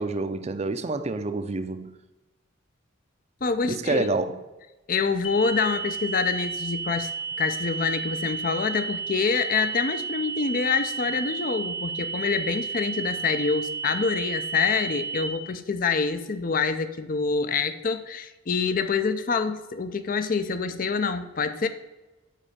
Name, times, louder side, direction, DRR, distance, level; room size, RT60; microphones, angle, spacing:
voice 1, 0.0-2.0 3.7-4.4, right 3 dB, 35° right, 0.5 m, -28 dB
voice 2, 3.4-4.1 4.9-7.1 7.4-21.7, left 5 dB, 45° left, 0.5 m, -26 dB
sound 1, 5.2-15.2, right 5 dB, 90° left, 1.8 m, -33 dB
7.5 x 4.4 x 6.8 m
head